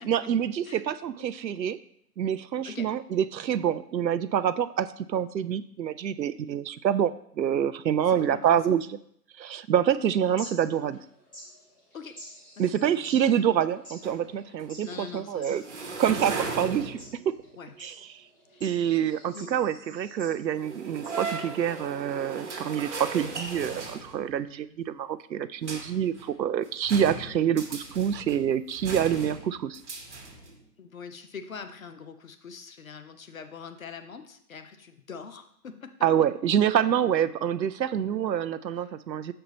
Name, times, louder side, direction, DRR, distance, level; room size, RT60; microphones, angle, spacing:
voice 1, 0.0-1.8 2.2-8.9 9.4-11.0 12.6-15.6 16.0-17.0 17.3-17.4 17.8-17.9 18.6-29.8 36.0-39.3, right 9 dB, 85° right, 14 dB, 0.6 m, -26 dB
voice 2, 8.0-8.8 11.9-12.2 12.6-13.1 14.8-15.7 17.6-17.8 18.5-18.6 19.3-19.6 30.8-36.1 39.3-39.4, left 5 dB, 55° left, 9 dB, 0.8 m, -43 dB
sound 1, 9.9-21.9, equal, 15° left, 1.0 m, -50 dB
sound 2, 14.0-14.7 15.0-15.1 15.6-17.4 20.5-24.5 25.6-26.3 26.7-30.6, right 4 dB, 45° right, 1.1 m, -37 dB
6.7 x 4.4 x 4.0 m, 0.68 s
figure-of-eight pair, 160°, 50 cm